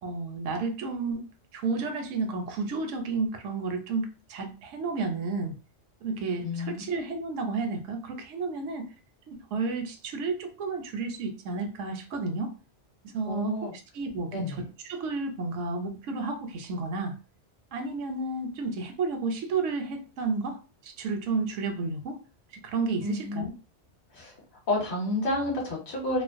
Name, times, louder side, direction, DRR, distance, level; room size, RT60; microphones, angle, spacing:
voice 1, 0.0-1.2 1.5-5.6 6.0-8.9 9.3-12.5 13.1-13.6 13.9-14.6 14.8-17.2 17.7-20.6 20.8-22.2 22.6-23.5, right 3 dB, 85° right, 0.9 m, -31 dB
voice 2, 6.4-6.8 13.3-13.7 14.3-14.7 23.0-23.4 24.1-24.3 24.7-26.2, left 2 dB, 45° left, 0.9 m, -30 dB
2.4 x 2.0 x 2.5 m
omnidirectional pair, 1.2 m